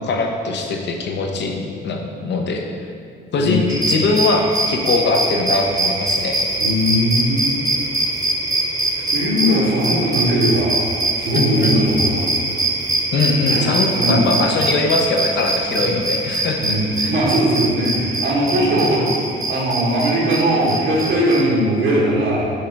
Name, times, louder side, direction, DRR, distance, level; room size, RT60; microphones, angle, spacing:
voice 1, 0.0-2.6 3.3-6.4 11.3-11.9 13.1-17.1 18.5-18.7, left 3 dB, 60° left, 3 dB, 0.8 m, -21 dB
voice 2, 3.3-3.7 6.6-7.6 9.0-10.8 11.2-12.4 13.4-14.3 15.8-16.0 16.6-22.6, right 1 dB, 75° right, -5 dB, 1.3 m, -19 dB
sound 1, 3.7-21.4, right 2 dB, 20° right, 0.9 m, -23 dB
5.6 x 3.4 x 5.3 m, 2.3 s
cardioid pair, 90°, 20 cm